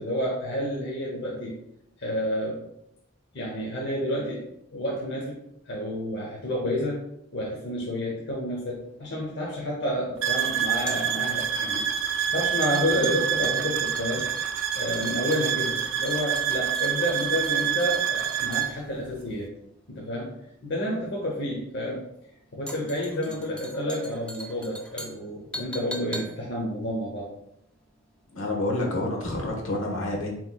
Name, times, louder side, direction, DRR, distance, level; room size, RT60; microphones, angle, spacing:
voice 1, 0.0-1.5 2.0-2.6 3.3-4.4 4.7-5.4 5.7-7.0 7.3-11.8 12.3-14.3 14.7-19.5 19.9-20.3 20.6-22.1 22.5-27.3, equal, 55° left, -3 dB, 0.9 m, -30 dB
sound 1, 8.7-28.0 28.2-28.4, equal, 5° left, 0.3 m, -43 dB
sound 2, 10.2-18.7, right 9 dB, 65° right, 0.4 m, -27 dB
voice 2, 28.3-30.3, left 1 dB, 70° left, 0 dB, 1.3 m, -28 dB
7.3 x 3.1 x 2.3 m, 0.77 s
head